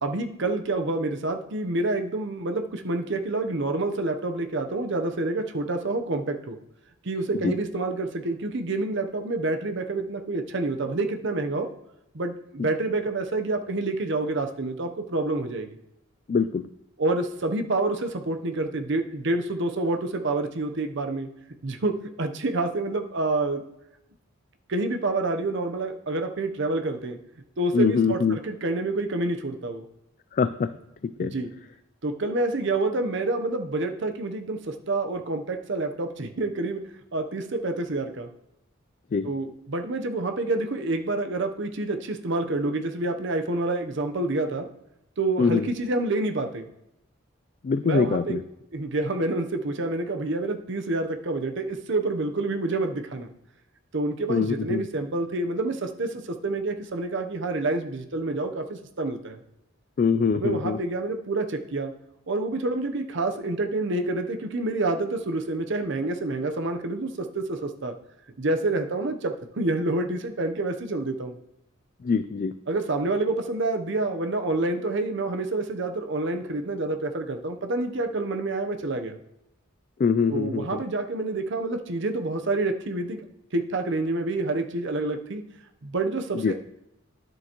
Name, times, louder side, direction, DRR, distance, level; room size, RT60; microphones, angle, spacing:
voice 1, 0.0-6.6 7.0-11.7 12.1-15.7 17.0-21.3 21.6-23.6 24.7-27.2 27.6-29.8 31.2-31.5 32.0-36.8 37.1-38.3 39.2-44.7 45.2-46.7 47.8-48.4 48.7-53.3 53.9-59.4 60.3-61.9 62.3-67.9 68.4-71.4 72.7-79.2 80.3-83.2 83.5-85.4 85.8-86.6, right 2 dB, 65° right, 6 dB, 0.8 m, -28 dB
voice 2, 16.3-16.6 27.7-28.4 30.3-30.7 31.2-31.3 39.1-39.3 45.4-45.7 47.6-48.4 54.3-54.8 60.0-60.8 72.0-72.5 80.0-80.8 86.4-86.5, left 5 dB, 40° left, 11 dB, 0.3 m, -23 dB
10.5 x 7.7 x 3.0 m, 0.85 s
head